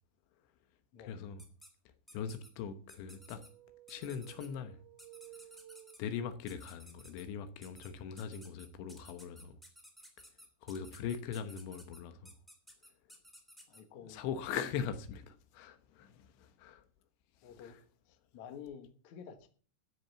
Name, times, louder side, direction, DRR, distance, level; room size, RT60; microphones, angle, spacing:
voice 1, 1.0-1.4 2.1-3.5 3.9-4.8 6.0-9.6 10.6-12.3 14.0-16.8 17.4-17.8, left 7 dB, 75° left, 3.2 m, -41 dB
sound 1, 1.4-1.7 2.1-2.5 2.9-3.5 3.9-4.5 5.0-6.0 6.5-7.2 7.6-7.9 8.2-13.8, equal, ahead, 1.7 m, -56 dB
sound 2, 2.9-6.5, right 14 dB, 75° right, 3.1 m, -57 dB
voice 2, 13.7-14.3 17.4-17.8 18.1-19.5, left 7 dB, 90° left, 1.6 m, -50 dB
13.5 x 7.8 x 7.0 m
omnidirectional pair, 5.8 m